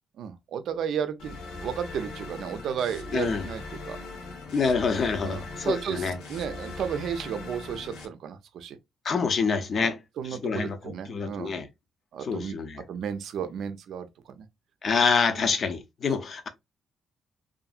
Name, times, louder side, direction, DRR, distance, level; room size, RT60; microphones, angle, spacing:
voice 1, 0.2-4.0 5.2-8.8 9.8-11.5 12.1-12.5 12.9-14.5, right 8 dB, 70° right, 0.4 m, -33 dB
sound 1, 1.2-8.1, left 3 dB, 85° left, 0.8 m, -40 dB
voice 2, 3.1-3.5 4.5-6.2 9.0-10.0 10.3-11.7 12.2-12.8 14.8-16.5, left 5 dB, 50° left, 0.6 m, -27 dB
2.7 x 2.5 x 2.4 m
cardioid pair, 90°, 0 cm